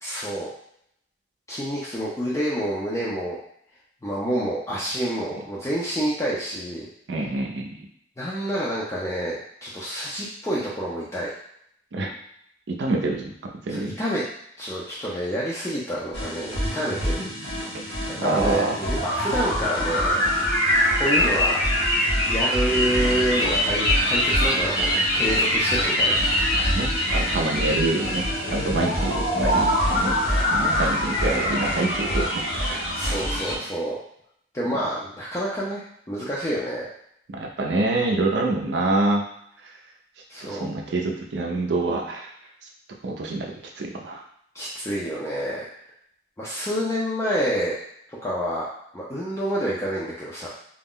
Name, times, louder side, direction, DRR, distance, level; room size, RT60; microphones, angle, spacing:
voice 1, 0.0-0.5 1.5-3.4 4.0-6.9 8.2-11.3 13.7-14.2 14.6-17.3 18.1-21.6 22.2-26.2 32.9-34.0 34.5-36.9 40.3-40.8 44.5-45.7 46.4-47.8 48.2-48.6 48.9-50.5, equal, 15° left, -7 dB, 0.4 m, -28 dB
voice 2, 7.1-7.7 11.9-12.1 12.7-13.3 13.7-14.0 18.2-18.8 26.7-30.2 30.5-32.8 37.3-39.2 40.4-42.3 43.0-44.2, right 2 dB, 75° right, 0 dB, 0.5 m, -26 dB
sound 1, 16.1-33.5, equal, 70° left, 1.0 m, -23 dB
2.4 x 2.0 x 3.6 m, 0.71 s
head